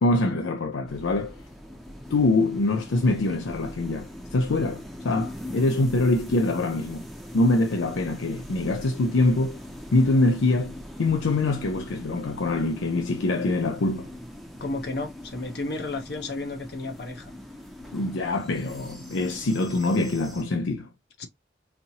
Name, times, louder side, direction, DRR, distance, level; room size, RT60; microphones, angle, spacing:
voice 1, 0.0-1.3 2.1-7.0 7.3-9.6 9.9-14.1 17.9-20.9, left 2 dB, 90° left, 0.5 m, -24 dB
sound 1, 0.9-20.4, left 1 dB, ahead, 0.6 m, -41 dB
voice 2, 14.6-17.3 21.2-21.3, left 2 dB, 60° left, 0.8 m, -32 dB
4.1 x 2.8 x 2.7 m
head